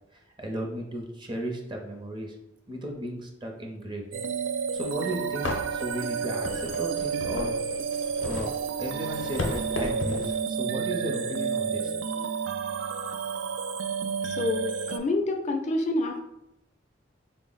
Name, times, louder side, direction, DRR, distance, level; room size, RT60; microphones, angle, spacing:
voice 1, 0.1-2.4 2.7-4.0 4.7-7.6 8.2-8.5 8.8-12.0, right 1 dB, 25° right, 1 dB, 0.5 m, -35 dB
sound 1, 4.1-15.0, right 6 dB, 85° right, 0.3 m, -31 dB
sound 2, 4.9-5.0 5.4-10.4, left 2 dB, 85° left, 0.6 m, -35 dB
voice 2, 14.2-16.2, left 2 dB, 40° left, 3 dB, 0.3 m, -28 dB
4.0 x 2.0 x 3.8 m, 0.85 s
head